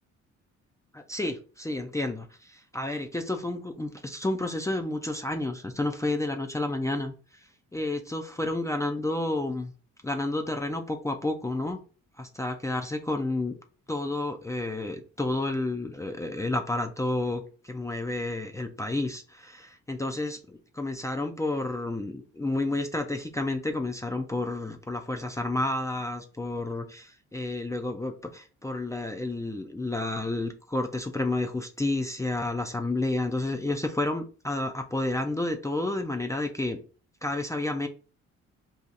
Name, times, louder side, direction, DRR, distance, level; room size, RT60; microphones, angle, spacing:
voice 1, 0.9-7.1 7.7-9.7 10.0-11.8 12.2-13.6 13.9-27.1 27.3-36.8 37.2-37.9, left 2 dB, 10° left, 4 dB, 0.4 m, -30 dB
2.7 x 2.4 x 3.8 m, 0.37 s
cardioid pair, 90°, 30 cm